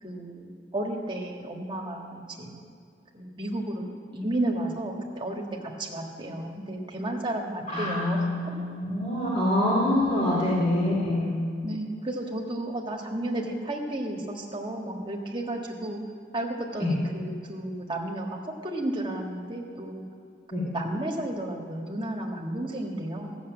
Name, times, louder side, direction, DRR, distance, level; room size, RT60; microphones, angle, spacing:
voice 1, 0.0-2.6 3.1-8.6 11.6-16.0 16.3-18.4 18.6-20.0 20.6-23.4, right 1 dB, 25° right, 0 dB, 1.5 m, -33 dB
voice 2, 7.7-11.3 16.8-17.0 20.5-20.6, left 1 dB, 40° left, -6 dB, 2.3 m, -25 dB
14.0 x 7.0 x 8.6 m, 2.3 s
head